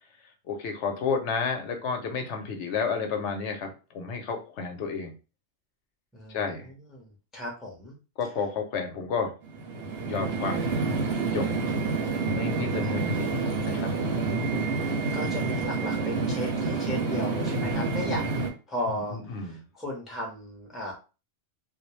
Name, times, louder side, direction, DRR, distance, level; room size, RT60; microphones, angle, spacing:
voice 1, 0.4-5.1 6.3-6.7 8.2-9.3 10.0-10.6 11.3-11.5 12.3-13.9 18.9-19.6, left 5 dB, 80° left, 4 dB, 0.9 m, -31 dB
voice 2, 6.1-8.0 12.8-13.4 15.1-20.9, left 1 dB, ahead, -2 dB, 0.6 m, -36 dB
sound 1, 9.4-18.5, right 3 dB, 65° right, 0.8 m, -28 dB
2.3 x 2.0 x 3.0 m, 0.32 s
omnidirectional pair, 1.2 m